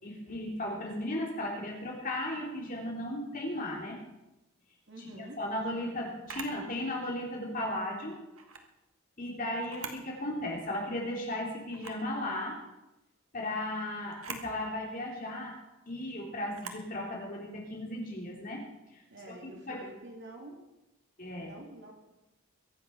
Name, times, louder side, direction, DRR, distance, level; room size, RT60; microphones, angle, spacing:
voice 1, 0.0-4.0 5.4-8.2 9.2-12.6 13.3-15.6 15.9-18.6 18.9-19.0 19.7-19.8 21.2-21.5, left 1 dB, 40° left, -1 dB, 3.4 m, -35 dB
voice 2, 4.9-5.4 19.1-20.6 21.4-21.9, right 1 dB, 55° right, 0 dB, 3.3 m, -47 dB
Camera, 6.3-6.6 8.3-8.7 9.6-10.1 10.5-10.6 11.7-12.1 14.1-14.5 16.5-16.9, right 5 dB, 80° right, 1.5 m, -42 dB
22.5 x 8.2 x 5.7 m, 0.96 s
head